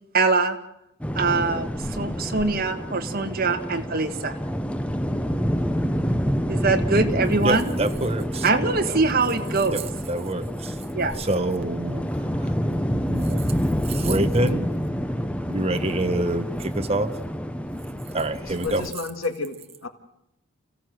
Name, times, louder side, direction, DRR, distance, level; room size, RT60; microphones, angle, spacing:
voice 1, 0.1-0.6 1.2-4.4 6.5-7.7 8.4-9.9 10.9-11.1, right 3 dB, 45° right, 6 dB, 1.8 m, -23 dB
sound 1, 1.0-18.9, equal, 5° left, 0.8 m, -28 dB
Artillery Drone Carrot Orange, 4.2-12.6, left 2 dB, 45° left, 7.6 m, -44 dB
voice 2, 7.4-8.4 9.7-9.8 10.1-10.7 11.2-12.0 12.7-12.8 13.1-13.4 13.9-14.7 15.5-17.1 18.1-18.9, right 1 dB, 30° right, 7 dB, 1.2 m, -26 dB
voice 3, 18.4-19.6 19.8-19.9, left 3 dB, 70° left, 7 dB, 1.8 m, -31 dB
29.0 x 16.0 x 7.8 m, 0.82 s
head